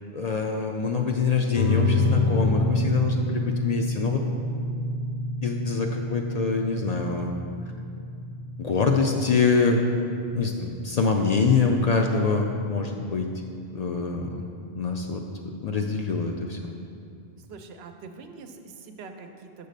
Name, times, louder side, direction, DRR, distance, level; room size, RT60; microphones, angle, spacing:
voice 1, 0.1-4.2 5.4-7.3 8.6-9.8 10.3-13.3 13.7-14.5 14.7-15.2 15.6-16.6, left 4 dB, 55° left, 2 dB, 0.5 m, -25 dB
sound 1, 1.5-12.6, left 2 dB, 90° left, 0.9 m, -28 dB
voice 2, 17.5-19.7, right 4 dB, 85° right, 6 dB, 0.8 m, -44 dB
6.9 x 4.0 x 6.5 m, 2.4 s
omnidirectional pair, 1.0 m